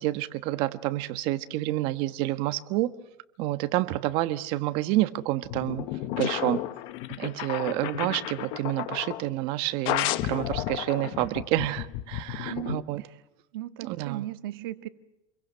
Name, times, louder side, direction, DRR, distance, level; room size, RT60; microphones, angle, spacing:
voice 1, 0.0-2.9 3.4-5.9 6.2-6.6 7.2-13.0 13.8-14.2, right 16 dB, 50° right, 1.3 m, -28 dB
sound 1, 5.4-9.3 9.9-12.8, left 14 dB, 45° left, 1.0 m, -32 dB
voice 2, 12.5-13.2 13.5-14.9, right 14 dB, 80° right, 1.8 m, -37 dB
28.5 x 22.5 x 5.7 m
supercardioid pair, 170°, 12 cm